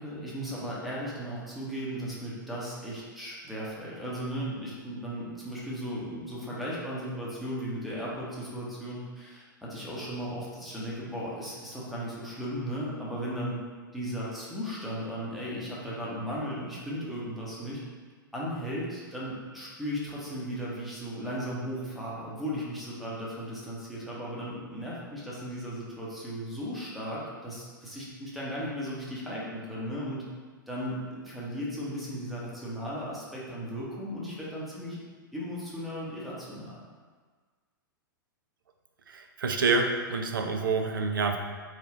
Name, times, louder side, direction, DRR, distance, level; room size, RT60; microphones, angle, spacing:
voice 1, 0.0-13.6 13.9-17.8 18.3-30.2 30.7-35.0 35.3-36.8, equal, ahead, -7 dB, 0.9 m, -36 dB
voice 2, 39.1-41.4, right 4 dB, 70° right, 5 dB, 0.4 m, -27 dB
3.3 x 2.5 x 3.6 m, 1.5 s
figure-of-eight pair, 105°, 12 cm